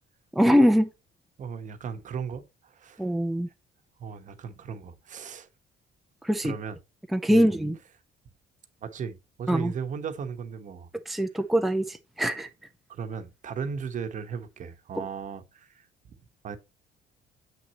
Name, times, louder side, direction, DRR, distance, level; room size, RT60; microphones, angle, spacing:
voice 1, 0.3-0.9 3.0-3.5 6.2-6.5 7.1-7.8 9.5-9.7 11.1-12.5, equal, ahead, 0.6 m, -23 dB
voice 2, 1.4-3.1 4.0-5.5 6.4-6.8 7.3-7.6 8.8-10.9 12.9-15.8 16.4-16.6, right 6 dB, 50° right, 1.1 m, -36 dB
7.4 x 6.2 x 2.9 m
cardioid pair, 110°, 17 cm